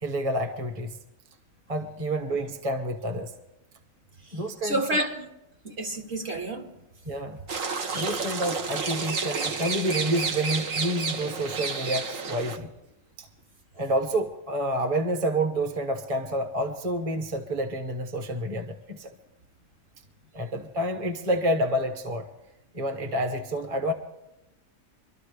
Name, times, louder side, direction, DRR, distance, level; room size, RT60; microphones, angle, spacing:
voice 1, 0.0-1.0 1.7-3.3 4.3-5.0 7.1-7.4 7.9-12.7 13.2-13.3 13.8-19.1 20.3-22.3 22.7-23.9, right 1 dB, 30° right, 1.1 m, -28 dB
voice 2, 4.2-5.3 5.6-6.7, right 1 dB, 50° right, 2.0 m, -30 dB
sound 1, 7.5-12.6, right 4 dB, 70° right, 1.5 m, -30 dB
25.5 x 13.0 x 3.3 m
omnidirectional pair, 1.4 m